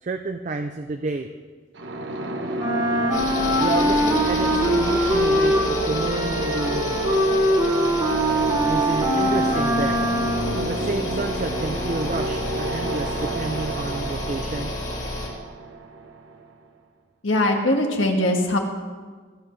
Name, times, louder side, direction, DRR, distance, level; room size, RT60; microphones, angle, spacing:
voice 1, 0.0-1.3 3.5-7.1 8.7-10.1 10.5-14.7, right 3 dB, 40° right, 6 dB, 0.4 m, -30 dB
sound 1, 1.7-16.5, right 2 dB, 75° right, 1.1 m, -29 dB
Wind instrument woodwind instrument, 2.6-10.7, equal, 20° right, 1.1 m, -23 dB
sound 2, 3.1-15.3, left 2 dB, 40° left, 2.3 m, -31 dB
voice 2, 17.2-18.6, left 1 dB, 85° left, 2 dB, 1.7 m, -21 dB
24.0 x 8.1 x 3.3 m, 1.5 s
head